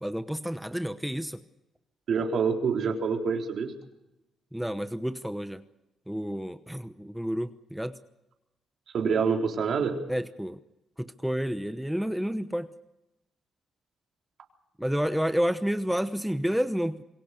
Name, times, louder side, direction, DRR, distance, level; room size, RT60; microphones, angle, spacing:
voice 1, 0.0-1.4 4.5-5.6 6.1-8.0 10.1-10.6 11.0-12.7 14.8-17.0, equal, 5° right, 11 dB, 1.0 m, -30 dB
voice 2, 2.1-3.7 8.9-10.0, right 5 dB, 60° right, 2 dB, 3.9 m, -26 dB
26.5 x 22.5 x 6.6 m, 0.97 s
cardioid pair, 85°, 0 cm